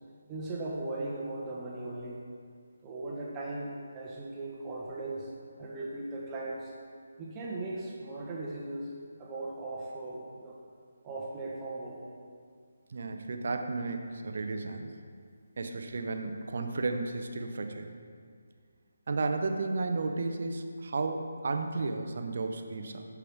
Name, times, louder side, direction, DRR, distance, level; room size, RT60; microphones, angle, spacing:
voice 1, 0.3-2.2 2.8-5.3 5.6-6.7 7.2-8.9 9.2-10.6 11.0-12.0, right 2 dB, 20° right, -5 dB, 1.1 m, -38 dB
voice 2, 12.9-14.9 15.6-17.9 19.1-23.1, right 3 dB, 55° right, 5 dB, 0.7 m, -33 dB
12.0 x 4.9 x 3.5 m, 2.1 s
figure-of-eight pair, 155°, 0 cm